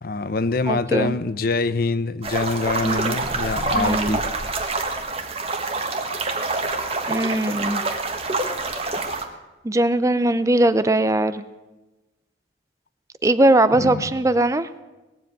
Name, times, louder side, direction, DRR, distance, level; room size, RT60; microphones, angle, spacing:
voice 1, 0.0-4.2 13.8-14.2, left 3 dB, 55° left, 15 dB, 0.7 m, -25 dB
voice 2, 0.7-1.2 2.8-3.2 3.8-4.2 7.1-7.8 9.6-11.4 13.2-14.7, right 1 dB, 15° right, 14 dB, 0.5 m, -20 dB
sound 1, 2.2-9.2, right 3 dB, 30° right, 1.4 m, -26 dB
19.5 x 7.7 x 9.2 m, 1.1 s
head